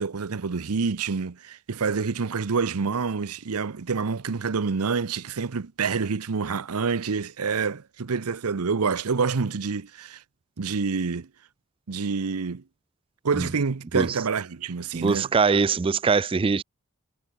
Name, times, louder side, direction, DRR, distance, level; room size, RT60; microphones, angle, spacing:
voice 1, 0.0-10.2 10.6-11.3 11.9-12.6 13.2-15.3, right 5 dB, 80° right, 0.7 m, -27 dB
voice 2, 15.0-16.6, right 5 dB, 25° right, 0.4 m, -22 dB
head